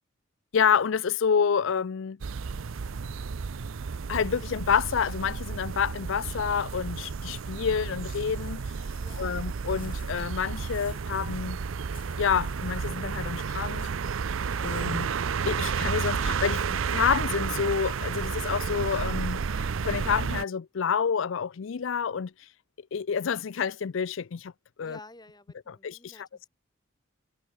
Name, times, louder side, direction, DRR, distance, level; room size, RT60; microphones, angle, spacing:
voice 1, 0.5-2.2 4.1-8.6 9.2-11.6 12.2-13.9 14.6-15.1 15.5-22.5 22.9-24.5 24.8-25.0 25.7-26.3, left 7 dB, 70° left, 0.5 m, -28 dB
sound 1, 2.2-20.4, right 5 dB, 75° right, 0.5 m, -32 dB
sound 2, 8.1-9.4 9.7-11.1 11.9-13.3 13.7-15.2 15.9-17.4, left 9 dB, 45° left, 6.0 m, -56 dB
voice 2, 9.0-9.4 24.8-26.5, left 2 dB, 20° left, 8.0 m, -52 dB
head